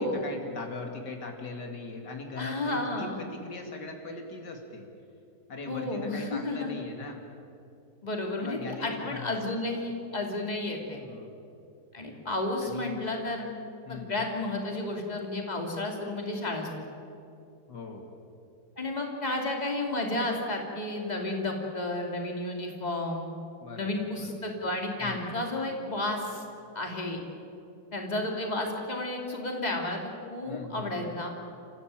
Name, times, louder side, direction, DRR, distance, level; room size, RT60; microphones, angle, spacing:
voice 1, 0.0-4.9 5.5-7.2 8.4-9.4 10.9-11.4 12.6-13.1 13.9-14.2 17.7-18.1 23.6-24.5 25.0-25.4 30.5-31.2, left 3 dB, 85° left, 3 dB, 3.0 m, -40 dB
voice 2, 2.4-3.3 3.6-3.7 5.7-6.8 8.0-11.0 11.9-13.5 13.9-16.7 18.8-23.3 23.7-26.4 26.7-27.2 27.9-30.0 30.3-31.3, left 2 dB, 25° left, 1 dB, 3.1 m, -32 dB
29.5 x 15.0 x 9.0 m, 2.8 s
omnidirectional pair, 1.8 m